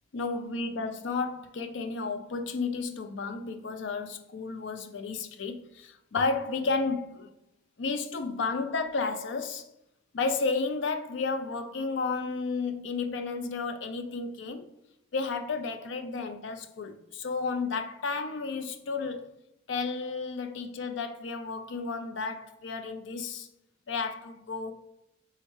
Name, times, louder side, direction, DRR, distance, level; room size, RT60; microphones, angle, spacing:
voice 1, 0.1-7.3 7.8-9.7 10.1-14.7 15.1-19.3 19.7-23.5 23.9-24.7, left 4 dB, 80° left, 0.5 m, -32 dB
3.4 x 3.2 x 4.4 m
head